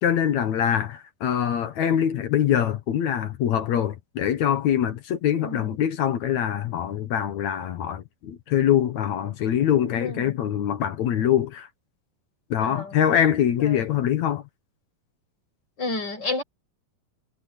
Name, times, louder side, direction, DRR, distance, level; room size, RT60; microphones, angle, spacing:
voice 1, 0.0-11.7 12.5-14.4, left 10 dB, 60° left, 2.1 m, -24 dB
voice 2, 5.4-5.8 10.0-10.3 12.6-12.9 13.6-13.8 15.8-16.4, left 2 dB, 25° left, 6.5 m, -31 dB
omnidirectional pair, 4.3 m